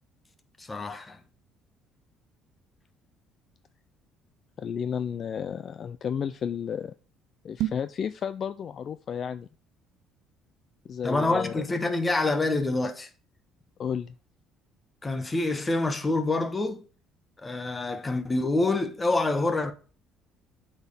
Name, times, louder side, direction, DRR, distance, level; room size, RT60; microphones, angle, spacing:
voice 1, 0.6-1.2 11.0-13.1 15.0-16.8 17.4-19.7, left 2 dB, 15° left, 1.1 m, -26 dB
voice 2, 4.6-6.9 7.4-9.5 10.9-11.6 13.8-14.1, left 7 dB, 45° left, 0.4 m, -32 dB
sound 1, 7.5-8.0, right 14 dB, 75° right, 0.6 m, -31 dB
7.9 x 4.4 x 5.6 m
cardioid pair, 115°, 0 cm